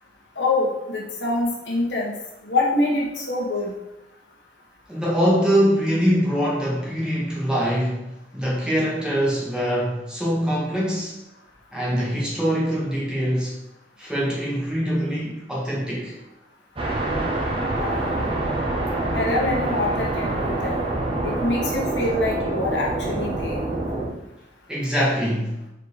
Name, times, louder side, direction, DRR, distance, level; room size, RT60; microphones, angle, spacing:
voice 1, 0.4-2.1 2.5-3.7 17.7-18.2 19.1-20.8 21.2-23.6, left 2 dB, 85° left, -2 dB, 1.6 m, -25 dB
voice 2, 4.9-8.0 8.3-11.2 11.7-13.5 14.0-16.1 24.7-25.6, equal, 5° right, -6 dB, 1.9 m, -23 dB
sound 1, 16.8-24.1, right 2 dB, 30° right, 1.3 m, -26 dB
4.9 x 4.8 x 4.9 m, 0.92 s
head